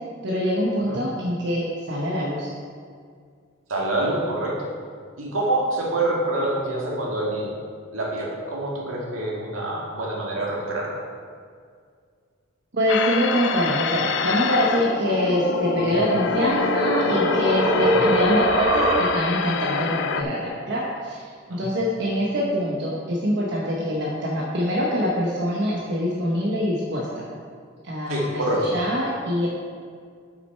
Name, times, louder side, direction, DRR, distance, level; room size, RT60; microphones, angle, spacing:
voice 1, 0.2-2.5 12.7-27.2 27.8-28.4 28.7-29.5, equal, 60° right, -4 dB, 1.0 m, -24 dB
voice 2, 3.7-4.7 5.2-7.5 7.9-11.0 17.8-18.0 21.5-21.7 28.1-28.7, right 1 dB, 85° right, -4 dB, 1.9 m, -26 dB
sound 1, 12.9-20.2, left 5 dB, 60° left, 0.4 m, -26 dB
sound 2, 15.7-19.5, right 1 dB, 25° right, 0.9 m, -24 dB
7.8 x 6.2 x 4.5 m, 2.1 s
head